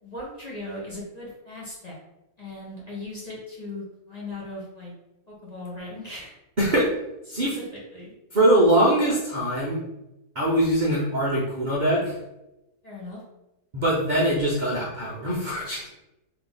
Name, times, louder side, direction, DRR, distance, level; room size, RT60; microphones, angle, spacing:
voice 1, 0.0-2.0 2.4-4.9 5.3-6.3 7.4-7.7 7.9-8.1 12.8-13.2, left 2 dB, 35° left, -5 dB, 0.7 m, -38 dB
voice 2, 6.6-6.9 7.3-7.5 8.3-9.8 10.4-12.1 13.7-15.9, right 1 dB, 75° right, -5 dB, 0.4 m, -22 dB
3.4 x 2.8 x 3.9 m, 0.94 s
omnidirectional pair, 1.9 m